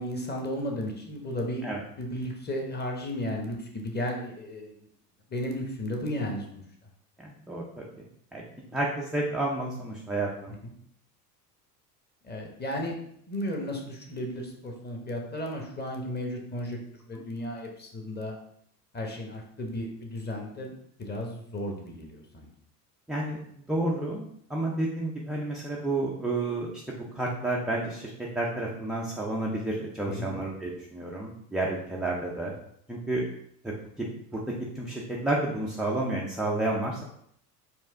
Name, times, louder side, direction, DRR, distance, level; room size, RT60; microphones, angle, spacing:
voice 1, 0.0-4.7 5.3-6.6 10.6-10.7 12.2-12.9 13.3-16.8 17.1-18.4 18.9-20.7 21.0-22.5 30.0-30.3, left 1 dB, 20° left, 1 dB, 1.0 m, -34 dB
voice 2, 7.2-7.6 8.3-8.4 8.7-10.6 17.1-17.2 23.1-24.2 24.5-28.1 28.4-32.5 32.9-33.2 33.6-34.4 34.8-37.0, right 2 dB, ahead, -4 dB, 0.4 m, -30 dB
4.4 x 2.4 x 3.5 m, 0.68 s
hypercardioid pair, 80°, 48 cm